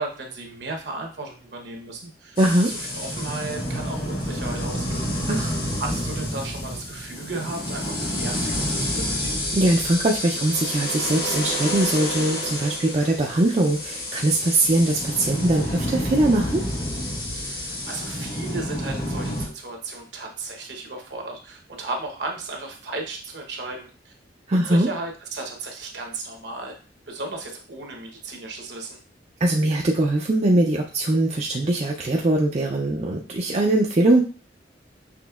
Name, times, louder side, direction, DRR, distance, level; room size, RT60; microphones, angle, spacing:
voice 1, 0.0-2.4 2.7-5.2 5.8-9.4 17.4-24.1 24.5-26.7 27.1-29.0, right 2 dB, 65° right, 2 dB, 0.9 m, -35 dB
sound 1, 2.4-19.5, equal, 55° left, 1.4 m, -29 dB
voice 2, 2.4-2.7 5.3-5.6 9.5-16.6 24.5-24.9 29.4-34.2, right 1 dB, 35° right, -1 dB, 0.4 m, -21 dB
6.0 x 3.0 x 2.3 m, 0.37 s
head